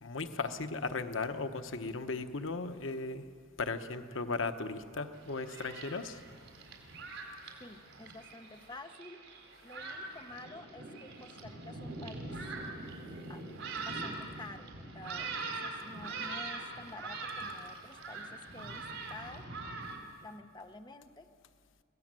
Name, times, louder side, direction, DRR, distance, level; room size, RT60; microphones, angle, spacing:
voice 1, 0.0-3.2 3.6-6.2, left 3 dB, 80° left, 9 dB, 1.0 m, -36 dB
Thunderstorm, 5.1-20.0, right 3 dB, 80° right, 4.2 m, -43 dB
voice 2, 7.6-9.2 9.6-12.4 13.3-13.5 13.7-19.5 20.2-21.3, left 2 dB, 20° left, 6 dB, 1.0 m, -50 dB
24.5 x 18.0 x 7.6 m, 2.1 s
head